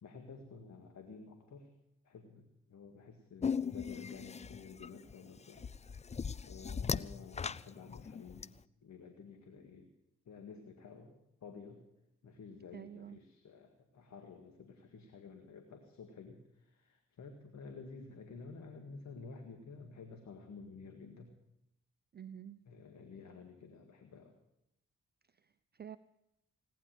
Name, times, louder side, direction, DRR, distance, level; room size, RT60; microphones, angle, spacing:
voice 1, 0.0-1.7 2.0-5.7 6.4-8.5 8.8-9.9 10.3-11.8 12.2-21.3 22.7-24.3, left 4 dB, 55° left, 5 dB, 1.9 m, -52 dB
sound 1, 3.4-8.4, left 6 dB, 20° left, 0.5 m, -38 dB
voice 2, 12.7-13.2 22.1-22.6 25.3-26.0, right 9 dB, 30° right, 13 dB, 0.6 m, -49 dB
17.5 x 10.0 x 7.7 m, 0.86 s
hypercardioid pair, 40°, 34 cm